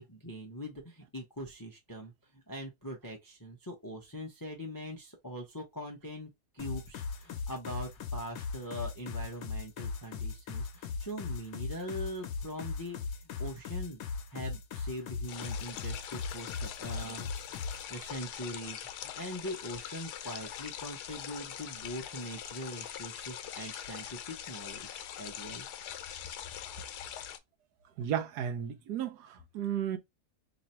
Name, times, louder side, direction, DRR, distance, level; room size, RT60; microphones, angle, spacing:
voice 1, 0.0-14.0 14.3-17.6 17.9-25.7 26.8-26.9, equal, 25° left, 0.4 m, -42 dB
sound 1, 6.6-17.8, left 5 dB, 70° left, 1.1 m, -38 dB
sound 2, 15.3-27.4, left 10 dB, 90° left, 1.2 m, -43 dB
voice 2, 28.0-30.0, right 9 dB, 80° right, 1.2 m, -34 dB
3.0 x 2.6 x 4.2 m
omnidirectional pair, 1.7 m